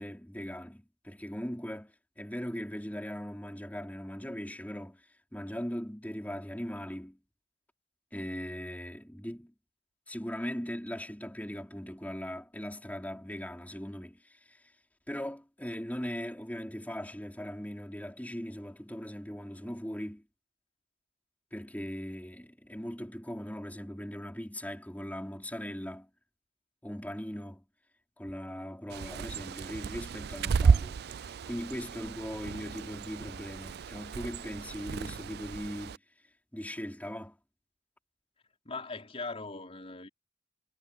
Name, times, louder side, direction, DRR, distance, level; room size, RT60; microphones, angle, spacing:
voice 1, 0.0-5.0 5.3-7.2 8.1-9.5 10.1-14.6 15.1-20.2 21.5-26.1 26.8-27.6 28.2-36.0 36.5-37.4, equal, 10° left, 4.6 m, -39 dB
Bird, 28.9-36.0, right 5 dB, 60° right, 0.4 m, -32 dB
voice 2, 38.6-40.1, left 3 dB, 30° left, 4.2 m, -40 dB
head